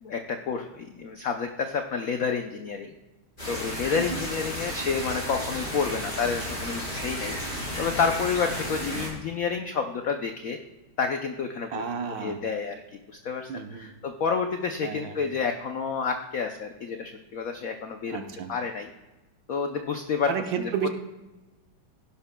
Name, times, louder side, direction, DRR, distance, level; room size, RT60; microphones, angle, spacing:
voice 1, 0.0-2.9 3.4-7.4 7.8-10.6 11.0-11.8 12.2-18.9 19.5-20.3 20.6-20.7, left 5 dB, 85° left, 5 dB, 0.7 m, -29 dB
sound 1, 3.4-9.1, equal, 20° left, 4.4 m, -33 dB
voice 2, 11.7-12.4 13.5-13.9 14.8-15.2 18.1-18.5 20.3-20.9, right 7 dB, 65° right, 6 dB, 1.6 m, -32 dB
16.0 x 11.0 x 2.2 m, 1.1 s
omnidirectional pair, 2.3 m